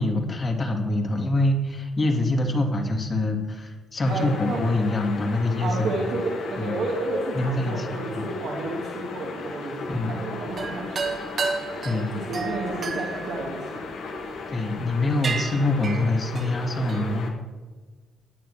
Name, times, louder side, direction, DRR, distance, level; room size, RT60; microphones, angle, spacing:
voice 1, 0.0-5.9 6.6-6.7 7.3-7.9 8.1-8.2 9.9-10.1 11.8-12.1 14.5-17.3, left 2 dB, 45° left, 2 dB, 2.7 m, -25 dB
sound 1, 4.0-17.3, left 3 dB, 70° left, 1.6 m, -36 dB
voice 2, 4.1-4.6 5.6-11.3 12.1-13.9, right 2 dB, 70° right, -5 dB, 2.5 m, -31 dB
sound 2, 10.5-14.2 14.8-14.9 15.2-17.2, right 4 dB, 50° right, 1.4 m, -32 dB
19.5 x 9.5 x 3.2 m, 1.3 s
hypercardioid pair, 45°, 0 cm